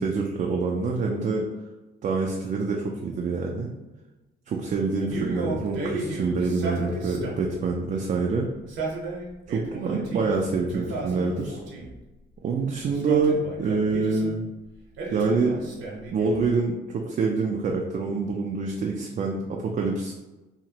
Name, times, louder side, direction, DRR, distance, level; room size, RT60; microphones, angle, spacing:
voice 1, 0.0-1.5 2.0-3.7 4.5-8.5 9.5-11.6 12.4-14.4 15.1-15.6 16.1-20.1, right 4 dB, 40° right, 0 dB, 0.4 m, -26 dB
Male speech man speaking, 5.0-7.6 8.5-10.3 10.7-12.0 12.8-14.4 15.0-16.5, right 2 dB, 85° right, 0.9 m, -34 dB
2.9 x 2.5 x 2.8 m, 1.1 s
cardioid pair, 90°, 20 cm